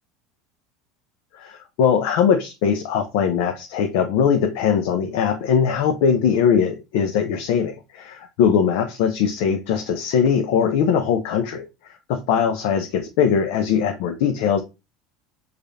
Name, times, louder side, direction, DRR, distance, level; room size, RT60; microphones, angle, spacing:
voice 1, 1.3-14.6, left 7 dB, 70° left, 0.5 m, -21 dB
4.9 x 2.5 x 2.6 m
supercardioid pair, 120°, 0 cm